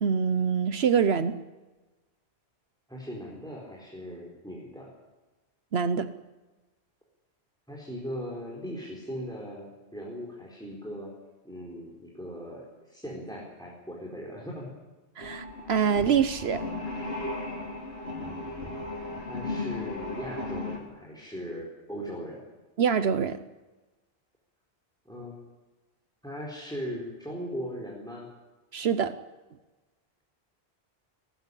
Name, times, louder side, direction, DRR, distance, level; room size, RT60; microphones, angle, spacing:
voice 1, 0.0-1.4 5.7-6.1 15.2-16.6 22.8-23.4 28.7-29.1, right 7 dB, 70° right, 12 dB, 1.1 m, -25 dB
voice 2, 2.9-4.9 7.7-11.1 11.4-14.8 18.2-18.8 19.3-22.4 25.0-25.4 26.2-28.3, equal, 5° left, -3 dB, 4.4 m, -39 dB
sound 1, 15.2-20.8, left 2 dB, 70° left, 4.5 m, -36 dB
19.5 x 15.5 x 9.9 m, 1.2 s
omnidirectional pair, 1.1 m